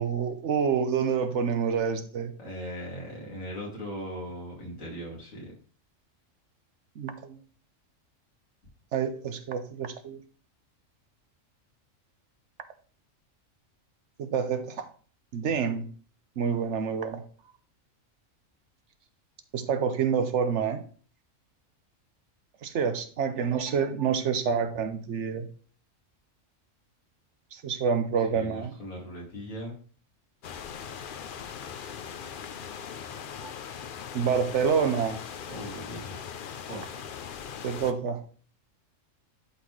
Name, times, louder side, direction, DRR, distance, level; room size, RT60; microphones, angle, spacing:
voice 1, 0.0-2.3 7.0-7.4 8.9-10.2 14.2-14.9 15.3-15.9 16.4-17.2 19.5-20.8 22.6-25.5 27.5-28.7 34.1-35.2 37.6-38.2, right 6 dB, 65° right, 1.1 m, -27 dB
voice 2, 2.4-5.5 28.3-29.8 35.5-36.1 36.7-36.9, equal, 85° left, 2.8 m, -39 dB
sound 1, 30.4-37.9, left 7 dB, 55° left, 0.6 m, -40 dB
11.5 x 4.0 x 3.2 m
omnidirectional pair, 1.3 m